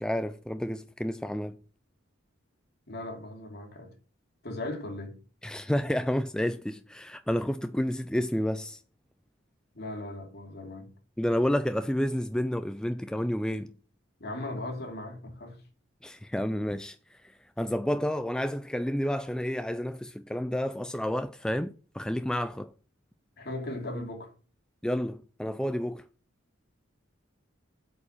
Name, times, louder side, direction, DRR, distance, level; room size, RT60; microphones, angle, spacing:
voice 1, 0.0-1.6 5.4-8.8 11.2-13.7 16.0-22.7 24.8-26.0, equal, 5° left, 0.3 m, -30 dB
voice 2, 2.9-3.9 4.4-5.2 9.7-11.0 14.2-15.6 23.4-24.3, left 1 dB, 50° left, 2.8 m, -38 dB
8.4 x 4.9 x 7.1 m
head